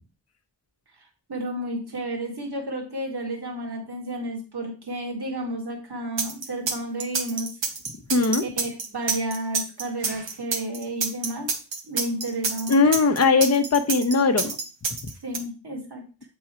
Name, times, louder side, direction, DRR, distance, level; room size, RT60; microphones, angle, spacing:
voice 1, 1.3-7.5 8.4-11.5 11.8-12.8 15.2-16.0, right 1 dB, 60° right, 1 dB, 1.9 m, -31 dB
sound 1, 6.2-15.4, right 4 dB, 85° right, 1.1 m, -27 dB
voice 2, 8.1-8.4 12.7-14.6, left 4 dB, 35° left, 6 dB, 0.8 m, -19 dB
7.8 x 3.9 x 4.4 m, 0.35 s
wide cardioid pair, 60°, 43 cm